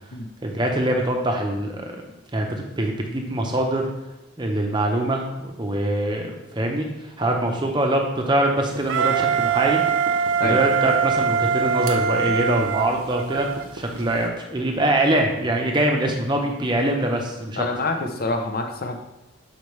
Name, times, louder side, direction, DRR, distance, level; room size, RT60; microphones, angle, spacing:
voice 1, 0.4-2.0 2.3-2.5 2.8-3.9 4.4-6.9 7.2-9.8 10.4-17.6, right 1 dB, 20° right, 2 dB, 0.7 m, -23 dB
sound 1, 8.6-14.3, right 3 dB, 90° right, 0.8 m, -41 dB
Wind instrument woodwind instrument, 8.9-13.7, right 7 dB, 65° right, 0.3 m, -22 dB
voice 2, 17.6-19.0, left 2 dB, 45° left, 4 dB, 0.6 m, -26 dB
6.9 x 4.4 x 3.2 m, 0.97 s
head